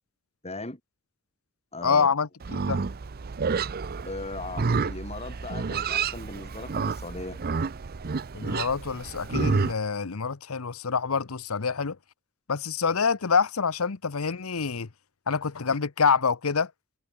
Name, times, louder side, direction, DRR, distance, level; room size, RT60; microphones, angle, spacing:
voice 1, 0.4-0.8 1.7-2.1 4.0-7.4, left 2 dB, 30° left, 5.7 m, -38 dB
voice 2, 1.8-2.8 8.3-12.0 12.5-14.9 15.3-16.7, left 5 dB, 85° left, 0.9 m, -26 dB
Livestock farm animals working animals, 2.4-9.7, right 4 dB, 45° right, 0.6 m, -29 dB
head